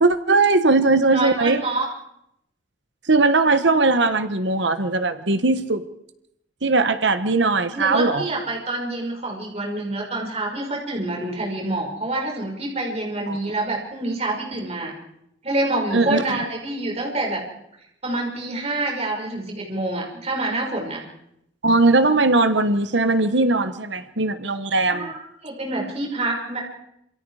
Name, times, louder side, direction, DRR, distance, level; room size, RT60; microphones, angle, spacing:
voice 1, 0.0-1.6 3.1-5.8 6.6-8.2 13.3-13.4 15.9-16.2 21.6-25.1, right 3 dB, 70° right, 10 dB, 1.3 m, -19 dB
voice 2, 1.0-1.9 7.7-14.9 15.4-17.4 18.0-21.0 24.9-26.6, right 2 dB, 35° right, -1 dB, 5.9 m, -27 dB
27.5 x 27.0 x 4.9 m, 0.79 s
head